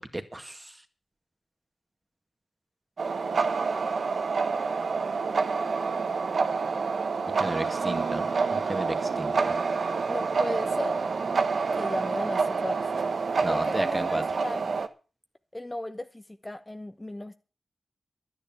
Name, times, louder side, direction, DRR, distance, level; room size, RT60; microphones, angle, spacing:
voice 1, 0.1-0.8 7.4-8.2 8.5-9.5 13.4-14.2, right 1 dB, 20° right, 2.0 m, -33 dB
sound 1, 3.0-14.9, right 4 dB, 75° right, 1.2 m, -28 dB
voice 2, 10.1-11.0 11.7-12.9 13.5-14.7 15.5-17.3, left 1 dB, 20° left, 1.0 m, -35 dB
11.0 x 10.0 x 7.2 m
cardioid pair, 60°, 0 cm